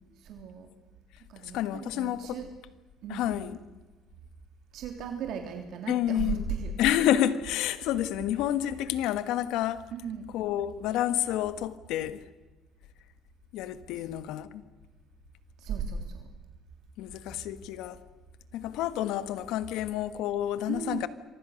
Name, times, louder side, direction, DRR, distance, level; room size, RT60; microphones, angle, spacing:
voice 1, 0.2-0.7 1.3-2.5 3.0-3.7 4.7-6.7 8.6-8.7 9.9-10.3 13.9-14.0 15.6-16.3 20.7-21.1, right 7 dB, 70° right, 3.3 m, -36 dB
voice 2, 1.4-2.4 3.1-3.6 5.9-6.4 6.8-9.9 10.3-12.2 13.5-14.6 17.0-18.0 18.5-21.1, left 12 dB, 85° left, 1.5 m, -29 dB
28.0 x 24.5 x 6.6 m
cardioid pair, 115°, 0 cm